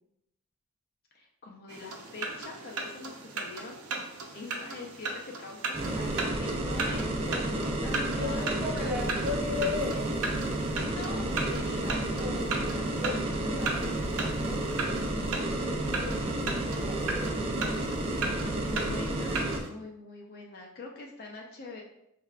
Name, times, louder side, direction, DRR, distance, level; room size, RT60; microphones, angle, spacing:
voice 1, 1.1-8.6 10.8-12.0 12.4-13.9 18.4-21.8, left 3 dB, 45° left, 0 dB, 0.5 m, -44 dB
sound 1, 1.7-19.7, right 3 dB, 80° right, 0.7 m, -37 dB
sound 2, 5.7-19.6, right 1 dB, 25° right, 0.5 m, -31 dB
voice 2, 7.9-10.2 12.2-12.5 13.0-14.1 14.4-16.3 16.5-17.8, left 4 dB, 5° right, -5 dB, 1.0 m, -37 dB
5.5 x 3.3 x 2.4 m, 0.82 s
head